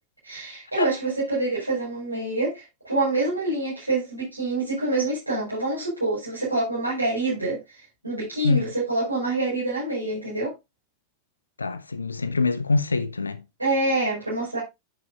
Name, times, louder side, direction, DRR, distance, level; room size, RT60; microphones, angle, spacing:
voice 1, 0.2-10.5 13.6-14.6, right 2 dB, 85° right, 5.4 m, -26 dB
voice 2, 11.6-13.4, left 3 dB, 80° left, 0.7 m, -24 dB
10.0 x 8.8 x 2.4 m
figure-of-eight pair, 90°, 0 cm